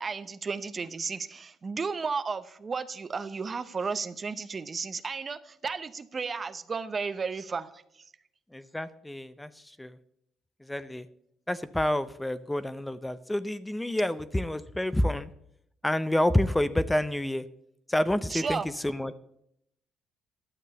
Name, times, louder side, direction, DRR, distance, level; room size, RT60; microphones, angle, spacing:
voice 1, 0.0-7.8 18.3-18.7, right 5 dB, 35° right, 13 dB, 0.7 m, -33 dB
voice 2, 8.5-10.0 10.6-11.1 11.5-15.3 15.8-17.5 17.9-19.2, left 1 dB, 10° left, 14 dB, 0.6 m, -28 dB
12.0 x 6.7 x 6.7 m, 0.74 s
cardioid pair, 80°, 0 cm